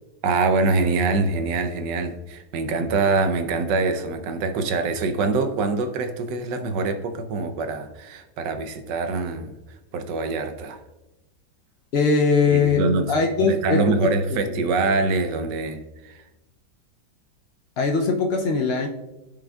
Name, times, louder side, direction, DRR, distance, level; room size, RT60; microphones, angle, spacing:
voice 1, 0.2-9.5 9.9-10.8 12.5-13.1 13.4-16.2, right 3 dB, 85° right, 7 dB, 1.4 m, -24 dB
voice 2, 11.9-14.6 17.8-18.9, left 4 dB, 75° left, 3 dB, 0.5 m, -21 dB
13.5 x 5.3 x 2.3 m, 1.0 s
omnidirectional pair, 1.8 m